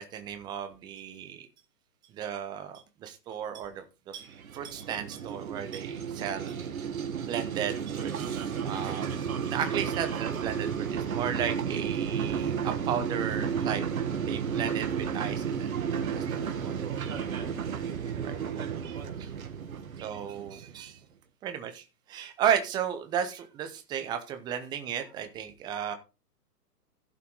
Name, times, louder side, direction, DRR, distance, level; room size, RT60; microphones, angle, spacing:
voice 1, 0.0-1.4 2.1-4.3 4.5-6.6 7.2-13.9 14.3-17.5 18.0-18.3 18.8-19.3 20.0-21.0 21.4-26.0, right 8 dB, 10° right, 8 dB, 0.7 m, -35 dB
sound 1, 4.2-20.9, right 7 dB, 60° right, 1.6 m, -32 dB
15.5 x 5.6 x 3.9 m, 0.29 s
figure-of-eight pair, 125°, 48 cm